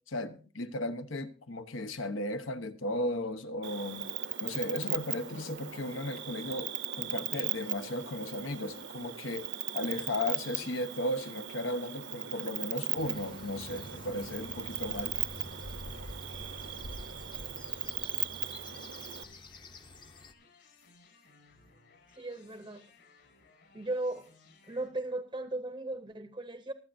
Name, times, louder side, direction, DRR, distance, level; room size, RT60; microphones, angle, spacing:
voice 1, 0.1-4.1 4.4-9.5 9.7-15.2, left 1 dB, 80° left, 1.1 m, -35 dB
Cricket, 3.6-19.2, right 12 dB, 65° right, 0.7 m, -38 dB
sound 1, 12.9-20.3, left 1 dB, 25° left, 0.7 m, -47 dB
sound 2, 18.0-24.9, left 4 dB, 65° left, 6.0 m, -62 dB
voice 2, 22.1-22.9 23.7-24.3 24.7-26.7, right 2 dB, 25° right, 0.7 m, -36 dB
24.5 x 8.9 x 2.6 m
head